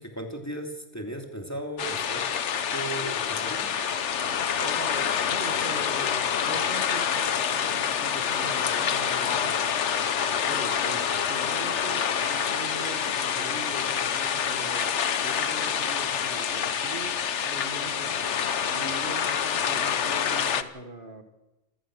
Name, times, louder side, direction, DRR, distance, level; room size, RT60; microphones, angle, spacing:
voice 1, 0.0-2.3 2.7-3.7, right 1 dB, 15° left, 2 dB, 2.8 m, -36 dB
sound 1, 1.8-20.6, left 7 dB, 75° left, 1.3 m, -27 dB
voice 2, 4.6-18.2 18.7-21.2, right 2 dB, 45° right, 5 dB, 2.0 m, -42 dB
26.5 x 15.5 x 6.3 m, 1.0 s
omnidirectional pair, 1.2 m